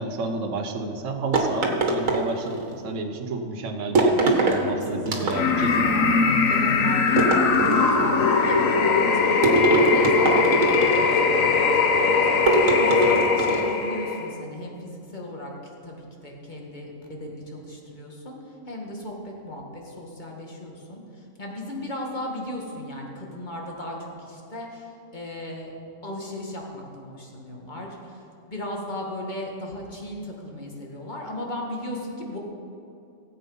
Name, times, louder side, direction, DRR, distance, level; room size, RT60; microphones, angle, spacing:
voice 1, 0.0-5.9, right 3 dB, 70° right, 4 dB, 1.4 m, -31 dB
sound 1, 1.3-2.7 4.0-4.6 5.1-5.7 7.2-8.1 9.4-11.2 12.5-13.7, right 3 dB, 85° right, 1.9 m, -23 dB
voice 2, 4.0-6.2 6.5-25.7 26.0-28.2 28.5-32.4, left 1 dB, 35° left, -1 dB, 2.0 m, -36 dB
sound 2, 5.3-14.3, left 4 dB, 85° left, 1.3 m, -21 dB
17.5 x 8.3 x 5.5 m, 2.6 s
omnidirectional pair, 1.4 m